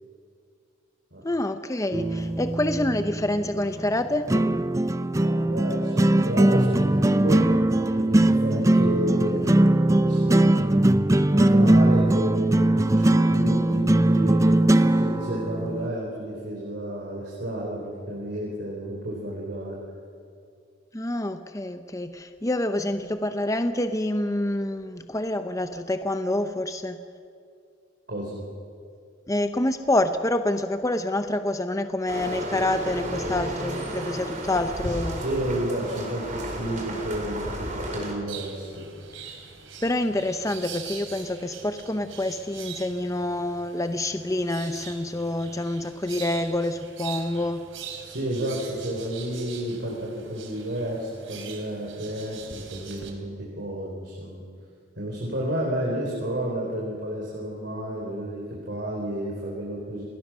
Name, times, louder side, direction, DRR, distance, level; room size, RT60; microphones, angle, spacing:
voice 1, 1.2-4.4 20.9-27.0 29.3-35.2 39.8-47.7, left 1 dB, 15° left, 9 dB, 0.7 m, -27 dB
sound 1, 1.9-15.9, right 1 dB, 15° right, 0.5 m, -20 dB
voice 2, 5.1-7.4 7.9-9.5 10.0-10.7 11.3-12.7 12.9-19.8 28.1-28.4 35.1-38.8 48.0-54.4 55.0-60.0, right 1 dB, 60° right, -3 dB, 4.4 m, -31 dB
sound 2, 32.1-38.1, right 1 dB, 40° right, 4.3 m, -33 dB
sound 3, 38.3-53.1, right 7 dB, 90° right, 3.2 m, -43 dB
28.5 x 20.5 x 6.2 m, 2.3 s
head